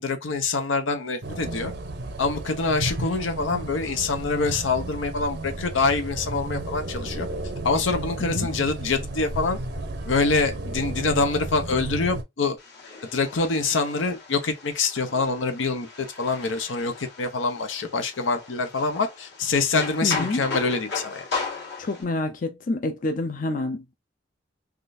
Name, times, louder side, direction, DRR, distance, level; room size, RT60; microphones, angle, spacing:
voice 1, 0.0-1.7 2.2-7.3 7.6-9.6 10.1-12.6 13.0-21.2, left 4 dB, 85° left, 0.7 m, -25 dB
sound 1, 1.2-12.2, right 2 dB, 60° right, 0.6 m, -33 dB
sound 2, 12.6-22.0, left 4 dB, 65° left, 1.4 m, -37 dB
voice 2, 20.0-20.5 21.8-24.0, left 2 dB, 45° left, 0.5 m, -28 dB
3.6 x 2.4 x 2.6 m
head